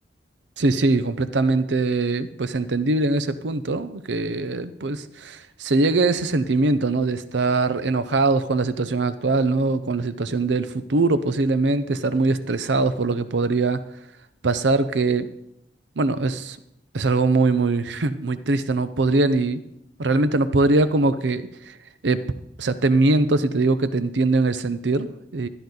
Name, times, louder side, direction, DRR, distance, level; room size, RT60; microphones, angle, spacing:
voice 1, 0.6-13.8 14.4-15.3 16.0-16.6 16.9-19.6 20.0-21.7 22.0-22.2 22.6-25.5, right 3 dB, 85° right, 13 dB, 0.7 m, -22 dB
13.0 x 11.0 x 3.9 m, 0.81 s
head